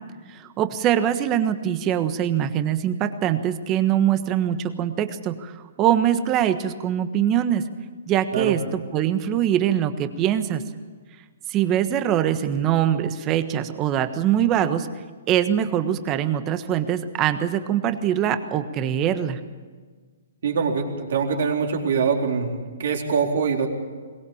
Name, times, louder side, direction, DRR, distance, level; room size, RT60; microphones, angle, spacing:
voice 1, 0.3-7.7 8.1-10.6 11.5-14.9 15.3-19.4, right 10 dB, 25° right, 10 dB, 1.4 m, -23 dB
voice 2, 20.4-23.7, right 6 dB, 65° right, 1 dB, 4.1 m, -23 dB
22.5 x 19.0 x 7.2 m, 1.5 s
hypercardioid pair, 155°, 0 cm